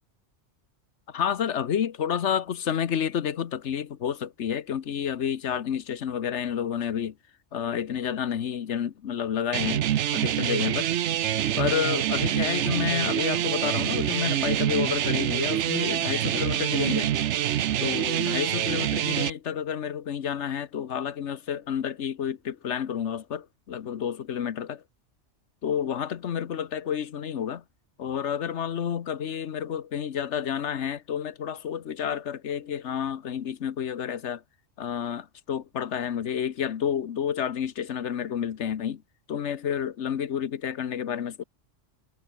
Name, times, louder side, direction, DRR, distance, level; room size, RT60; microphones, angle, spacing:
voice 1, 1.1-7.1 7.5-9.9 10.1-10.9 11.6-17.1 17.8-24.8 25.6-27.6 28.0-34.4 34.8-39.0 39.3-41.4, left 8 dB, 75° left, 1.2 m, -30 dB
sound 1, 9.5-19.3, right 11 dB, 75° right, 1.0 m, -26 dB
omnidirectional pair, 1.2 m